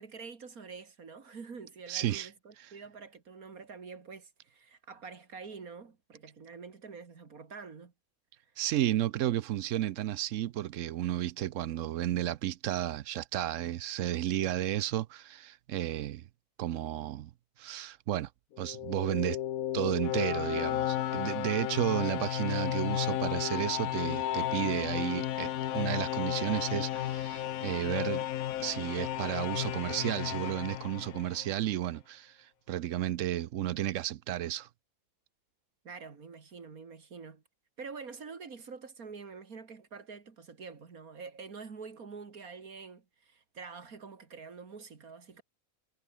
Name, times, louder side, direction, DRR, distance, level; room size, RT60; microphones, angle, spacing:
voice 1, 0.0-7.9 35.8-37.4 37.8-45.4, right 5 dB, 90° right, 2.7 m, -46 dB
voice 2, 1.9-2.3 8.6-16.2 16.6-17.3 17.6-18.3 18.6-19.4 19.7-28.2 28.6-34.7, right 13 dB, 70° right, 0.9 m, -32 dB
sound 1, 18.5-31.6, left 12 dB, 80° left, 1.2 m, -33 dB
omnidirectional pair, 1.5 m